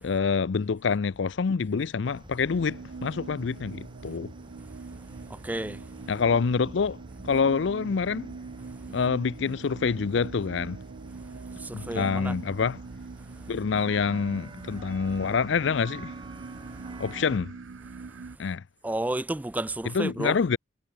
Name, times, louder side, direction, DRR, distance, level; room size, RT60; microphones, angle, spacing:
voice 1, 0.0-4.3 6.1-7.0 7.2-8.3 8.9-10.8 11.7-12.8 13.5-16.1 17.0-17.5 18.4-18.6 19.9-20.6, left 5 dB, 70° left, 0.5 m, -26 dB
sound 1, 2.0-17.4, right 2 dB, 25° right, 1.5 m, -48 dB
sound 2, 2.5-18.4, right 4 dB, 85° right, 0.6 m, -43 dB
voice 2, 5.3-5.8 11.6-12.4 18.8-20.4, right 1 dB, 10° right, 0.3 m, -31 dB
head